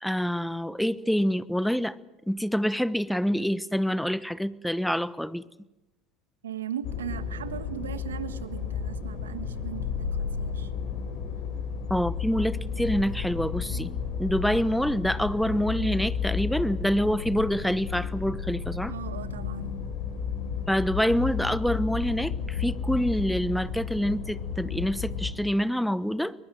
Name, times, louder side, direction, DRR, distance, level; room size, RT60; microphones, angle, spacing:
voice 1, 0.0-1.9 2.3-5.4 11.9-13.9 14.2-18.9 20.7-26.3, equal, ahead, 17 dB, 1.1 m, -26 dB
voice 2, 6.4-10.7 18.9-19.7, right 9 dB, 85° right, 13 dB, 1.4 m, -38 dB
sound 1, 6.8-25.3, left 6 dB, 65° left, 4.8 m, -32 dB
22.5 x 21.5 x 7.6 m, 1.0 s
hypercardioid pair, 70°, 0 cm